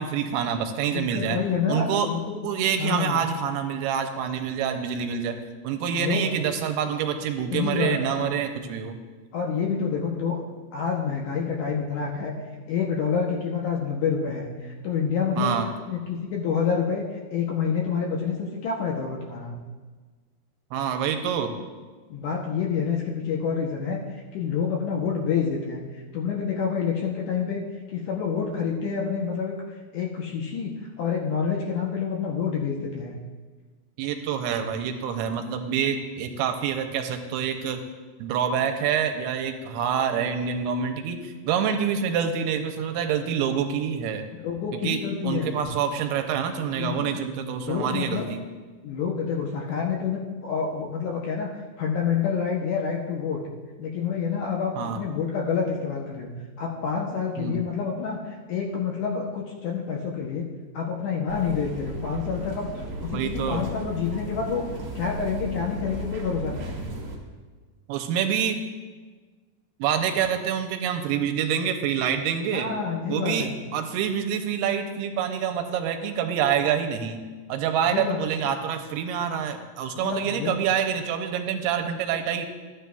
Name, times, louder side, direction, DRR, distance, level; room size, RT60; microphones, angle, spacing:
voice 1, 0.0-1.4 1.7-2.1 2.4-5.4 5.6-9.0 15.4-15.7 20.7-21.5 34.0-37.8 38.2-44.2 44.8-48.4 54.8-55.0 57.4-57.6 63.1-63.6 67.9-68.6 69.8-72.7 73.1-77.2 77.5-82.5, right 8 dB, 85° right, 6 dB, 2.6 m, -26 dB
voice 2, 0.9-2.5 2.8-3.3 5.9-6.3 7.5-8.3 9.3-10.4 10.7-12.3 12.7-15.6 15.9-17.0 17.3-19.6 22.1-27.6 27.9-29.6 29.9-33.2 44.4-45.6 46.8-47.2 47.7-48.3 48.8-51.5 51.8-53.4 53.8-56.3 56.6-60.4 60.7-62.7 63.0-64.6 65.0-66.8 72.5-73.6 77.9-78.2 80.0-80.6, left 6 dB, 80° left, -1 dB, 1.8 m, -28 dB
sound 1, 61.3-67.2, right 1 dB, 60° right, 2.1 m, -35 dB
13.5 x 9.7 x 2.3 m, 1.4 s
omnidirectional pair, 4.6 m